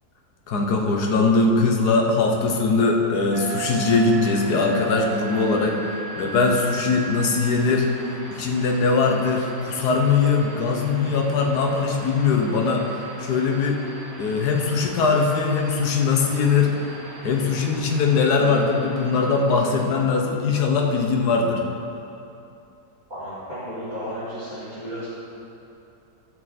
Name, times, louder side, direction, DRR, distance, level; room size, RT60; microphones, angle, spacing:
voice 1, 0.5-5.8 6.2-7.9 8.3-12.9 13.2-13.8 14.2-16.8 17.2-21.6, left 4 dB, 75° left, 1 dB, 1.6 m, -21 dB
sound 1, 3.3-19.9, right 4 dB, 60° right, 1.6 m, -37 dB
voice 2, 23.1-25.1, equal, 25° right, -14 dB, 2.8 m, -33 dB
15.5 x 6.5 x 4.3 m, 2.8 s
omnidirectional pair, 1.7 m